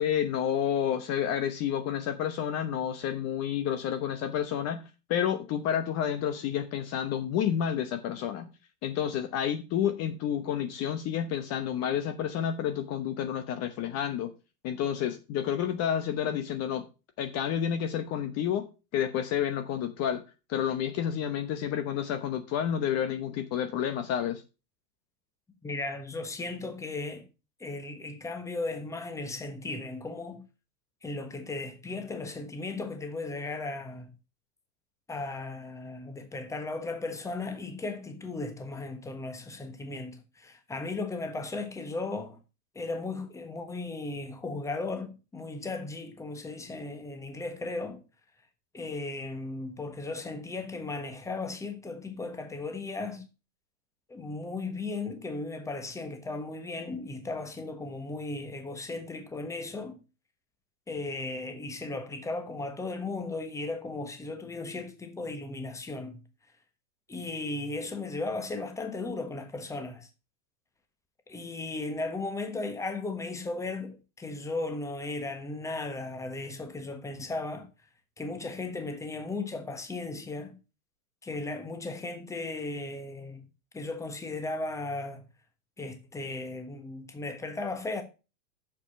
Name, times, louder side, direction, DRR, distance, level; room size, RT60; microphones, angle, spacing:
voice 1, 0.0-4.8 5.1-8.5 8.8-14.3 14.6-16.8 17.2-18.7 18.9-20.2 20.5-24.4, left 9 dB, 30° left, 1.0 m, -30 dB
voice 2, 25.6-27.2 27.6-30.4 31.0-34.1 35.1-42.4 42.7-48.0 48.7-53.3 54.1-60.0 60.9-66.2 67.1-70.1 71.3-77.7 78.2-80.6 81.2-83.4 83.7-85.2 85.8-88.0, left 3 dB, 5° left, 1.2 m, -36 dB
6.9 x 5.9 x 6.6 m
supercardioid pair, 140°, 47 cm